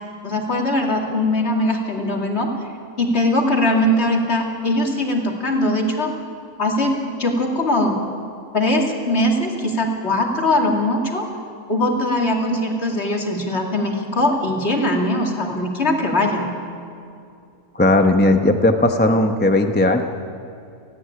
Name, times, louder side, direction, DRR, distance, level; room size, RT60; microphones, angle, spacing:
voice 1, 0.2-2.5 3.0-6.2 6.6-8.0 8.5-11.3 11.7-16.5, left 1 dB, 45° left, 1 dB, 2.6 m, -21 dB
voice 2, 17.7-20.0, left 1 dB, 10° left, 5 dB, 0.7 m, -16 dB
29.5 x 10.0 x 10.0 m, 2.5 s
omnidirectional pair, 1.5 m